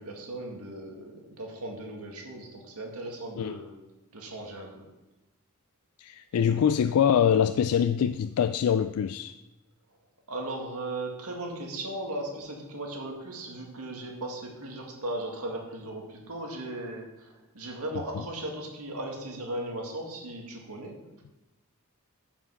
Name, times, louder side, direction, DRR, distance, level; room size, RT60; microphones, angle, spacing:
voice 1, 0.0-3.8 4.1-4.8 10.3-21.0, right 1 dB, 85° right, 2.1 m, -37 dB
voice 2, 6.0-9.4, left 8 dB, 85° left, 0.3 m, -24 dB
9.7 x 5.9 x 5.7 m
head